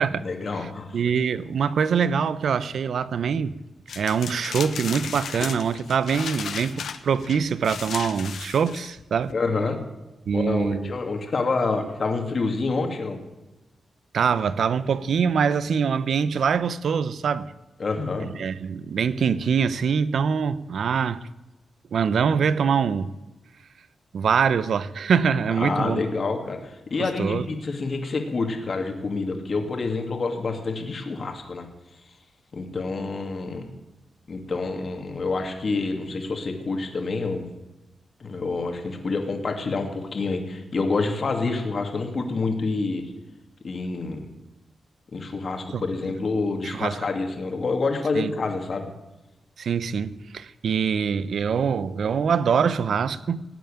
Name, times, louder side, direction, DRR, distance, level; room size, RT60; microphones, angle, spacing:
voice 1, 0.2-1.0 9.3-9.8 10.3-13.2 17.8-18.3 25.5-31.7 32.5-33.7 34.3-37.5 38.2-43.0 43.6-44.3 45.1-48.9, left 3 dB, 45° left, 2.5 m, -27 dB
voice 2, 0.9-3.6 4.0-9.3 10.3-10.9 14.1-17.5 18.2-21.2 21.9-23.1 24.1-26.0 27.0-27.4 45.7-45.8 46.6-46.9 48.1-48.3 49.6-53.4, right 6 dB, 70° right, 0.7 m, -24 dB
sound 1, 3.9-9.3, left 7 dB, 80° left, 1.0 m, -35 dB
17.0 x 9.1 x 8.8 m
wide cardioid pair, 120°, 0 cm